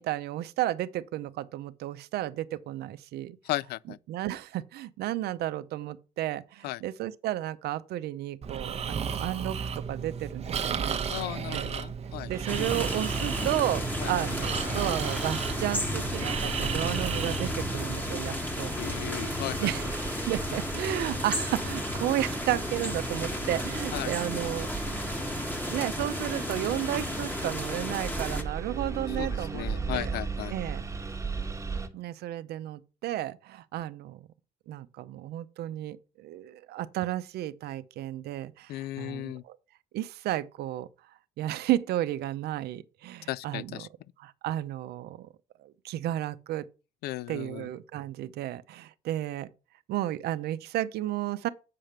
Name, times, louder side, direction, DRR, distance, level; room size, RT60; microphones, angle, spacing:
voice 1, 0.0-3.4 4.1-9.6 9.9-11.2 11.5-11.7 12.3-18.7 19.6-19.8 20.3-24.7 25.7-29.7 29.9-30.1 30.5-30.8 31.9-34.3 34.7-39.6 39.9-40.9 41.4-43.9 44.2-45.3 45.6-46.7 47.3-49.5 49.9-51.5, right 14 dB, 70° right, 0.7 m, -33 dB
voice 2, 3.4-4.0 6.6-6.8 11.1-12.3 14.0-14.1 18.8-19.7 23.9-24.1 29.1-30.5 38.7-39.4 43.3-43.9 47.0-47.7, left 16 dB, 70° left, 0.4 m, -35 dB
Breathing, 8.4-18.1, right 6 dB, 40° right, 1.0 m, -34 dB
Engine, 12.3-31.9, right 4 dB, 15° right, 1.4 m, -38 dB
Rain On Porch Summer Day, 12.5-28.4, left 1 dB, 10° left, 1.5 m, -33 dB
7.7 x 5.0 x 5.8 m
cardioid pair, 110°, 17 cm